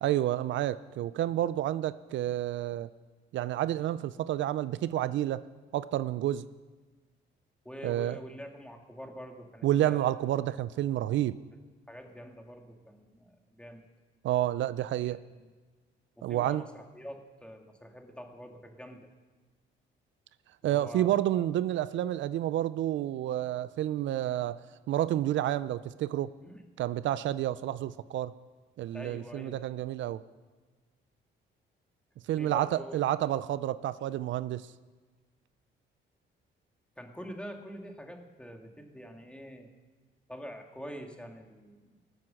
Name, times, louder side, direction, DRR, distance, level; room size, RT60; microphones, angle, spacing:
voice 1, 0.0-2.9 3.3-5.4 5.7-6.5 7.8-8.2 9.6-11.4 14.2-15.2 16.2-16.6 20.6-26.3 26.8-28.3 28.8-30.3 32.3-34.7, right 13 dB, 70° right, 0.4 m, -30 dB
voice 2, 7.7-10.2 11.9-13.8 15.0-15.5 16.2-19.1 20.6-21.6 26.4-26.6 28.9-29.6 32.4-33.0 37.0-39.7 40.3-42.0, equal, 5° left, 1.9 m, -45 dB
19.5 x 7.7 x 6.4 m
cardioid pair, 90°, 20 cm